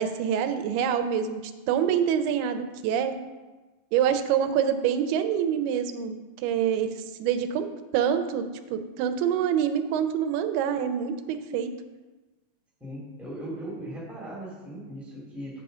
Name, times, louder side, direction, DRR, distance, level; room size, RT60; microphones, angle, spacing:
voice 1, 0.0-1.4 1.7-3.1 3.9-7.7 7.9-8.5 8.7-11.7, right 8 dB, 90° right, 8 dB, 2.6 m, -26 dB
voice 2, 12.8-15.6, right 1 dB, ahead, -5 dB, 0.7 m, -38 dB
8.4 x 4.3 x 6.5 m, 1.2 s
omnidirectional pair, 4.5 m